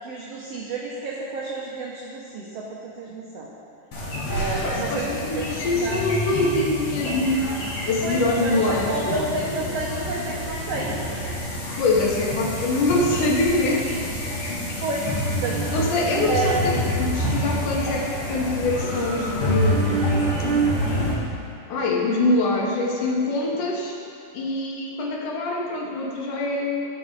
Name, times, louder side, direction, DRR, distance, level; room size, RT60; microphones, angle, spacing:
voice 1, 0.0-3.5 4.3-5.1 5.3-6.0 8.0-11.0 14.6-15.1 15.4-15.7 16.3-16.6, right 3 dB, 80° right, -4 dB, 1.4 m, -30 dB
sound 1, 3.9-21.1, equal, 55° left, 2.0 m, -27 dB
voice 2, 4.6-7.4 7.9-8.9 11.8-13.9 15.7-20.2 21.7-24.0 24.3-26.9, left 2 dB, 70° left, -2 dB, 2.5 m, -24 dB
13.0 x 5.5 x 3.9 m, 2.6 s
omnidirectional pair, 3.9 m